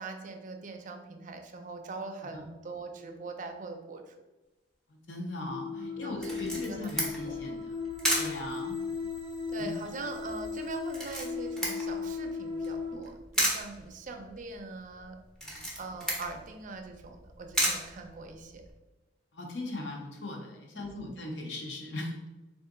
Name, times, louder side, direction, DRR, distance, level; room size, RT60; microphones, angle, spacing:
voice 1, 0.0-4.1 5.7-7.4 9.5-15.2 15.8-18.6 20.7-21.2, right 3 dB, 45° right, 5 dB, 0.4 m, -42 dB
voice 2, 4.9-7.7 8.2-8.8 9.6-9.7 15.5-15.7 19.3-22.1, left 2 dB, 75° left, 1 dB, 0.8 m, -39 dB
sound 1, 5.5-13.0, left 5 dB, 25° left, 1.1 m, -37 dB
Camera, 6.2-18.7, right 1 dB, 5° left, 0.8 m, -35 dB
3.7 x 2.5 x 3.6 m, 1.1 s
head